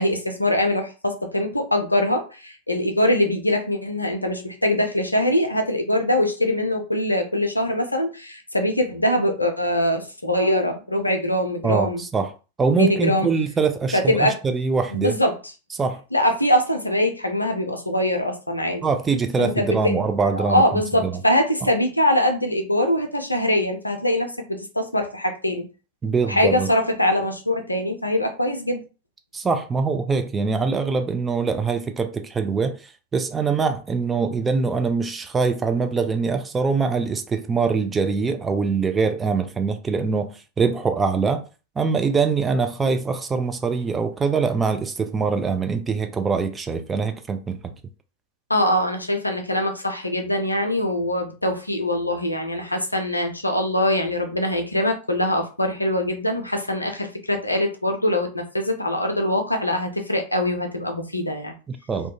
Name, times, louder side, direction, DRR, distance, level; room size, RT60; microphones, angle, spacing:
voice 1, 0.0-12.0 12.8-13.3 13.9-14.4 14.9-15.3 16.1-18.8 19.4-20.0 20.3-25.7 26.3-28.8 48.5-61.5, left 1 dB, 85° left, 0.5 m, -23 dB
voice 2, 11.6-12.3 12.6-15.2 15.8-16.0 18.8-21.2 26.0-26.7 29.3-41.4 41.8-47.7 61.7-62.1, right 5 dB, 15° right, 0.4 m, -23 dB
2.3 x 2.2 x 2.8 m
figure-of-eight pair, 90°, 0 cm